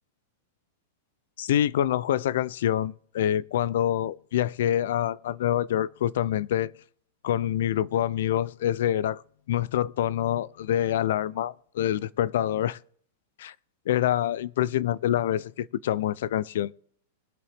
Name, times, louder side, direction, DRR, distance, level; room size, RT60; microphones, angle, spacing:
voice 1, 1.4-6.7 7.2-9.2 9.5-12.8 13.4-13.5 13.9-16.7, left 11 dB, 70° left, 0.4 m, -26 dB
21.5 x 7.7 x 3.4 m
supercardioid pair, 160°, 0 cm